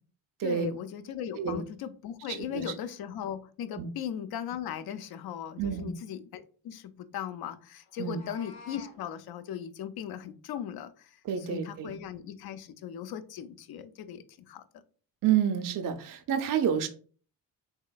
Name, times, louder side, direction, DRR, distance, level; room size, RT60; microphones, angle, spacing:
voice 1, 0.4-14.6, left 9 dB, 55° left, 12 dB, 0.5 m, -38 dB
voice 2, 2.3-2.6 3.8-3.9 5.6-5.9 8.0-8.2 11.2-11.9 15.2-16.9, right 8 dB, 45° right, 7 dB, 0.5 m, -29 dB
Meow, 7.9-8.9, left 4 dB, 75° left, 0.9 m, -49 dB
3.2 x 2.8 x 2.3 m, 0.41 s
supercardioid pair, 55°, 45 cm